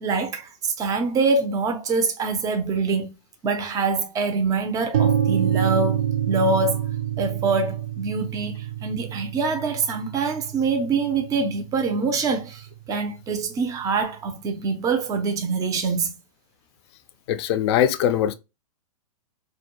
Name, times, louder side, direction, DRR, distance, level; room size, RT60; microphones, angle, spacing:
voice 1, 0.0-3.1 3.4-6.8 7.2-16.1, right 4 dB, 20° right, 0.5 m, -25 dB
sound 1, 4.9-12.8, right 9 dB, 70° right, 0.5 m, -27 dB
voice 2, 17.3-18.3, left 10 dB, 45° left, 0.4 m, -21 dB
2.2 x 2.1 x 2.9 m
hypercardioid pair, 125°, 18 cm